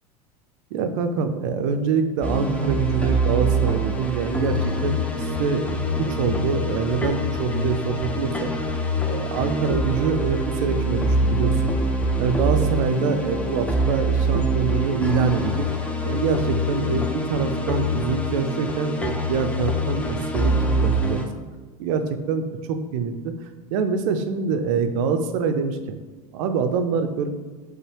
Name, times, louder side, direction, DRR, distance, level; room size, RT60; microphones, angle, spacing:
voice 1, 0.7-5.7 6.0-8.5 9.1-11.7 12.1-15.7 16.0-20.5 20.8-21.2 21.8-23.3 23.7-26.0 26.3-27.3, right 5 dB, 55° right, 8 dB, 0.4 m, -25 dB
sound 1, 2.2-21.3, right 1 dB, 5° left, 0.4 m, -24 dB
5.1 x 2.0 x 3.2 m, 1.3 s
figure-of-eight pair, 75°, 20 cm